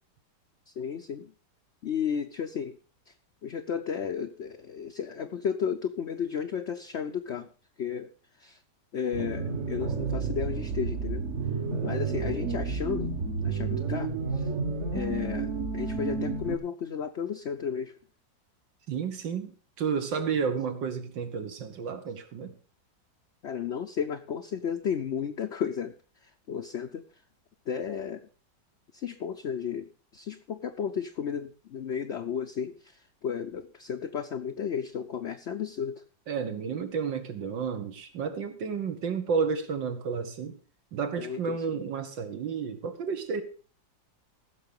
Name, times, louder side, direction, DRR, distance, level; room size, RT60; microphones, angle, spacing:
voice 1, 0.8-1.3 1.8-2.8 3.4-7.5 7.8-8.1 8.4-8.6 8.9-11.3 11.8-13.1 13.4-14.4 14.9-17.9 23.4-25.9 26.5-27.0 27.7-28.2 28.9-33.0 33.2-36.0 41.2-41.8, left 7 dB, 60° left, 0.7 m, -33 dB
sound 1, 9.1-16.6, right 4 dB, 45° right, 1.4 m, -31 dB
voice 2, 18.9-22.6 36.3-40.6 40.9-43.4, right 6 dB, 85° right, 2.2 m, -31 dB
15.5 x 6.4 x 5.3 m
omnidirectional pair, 2.0 m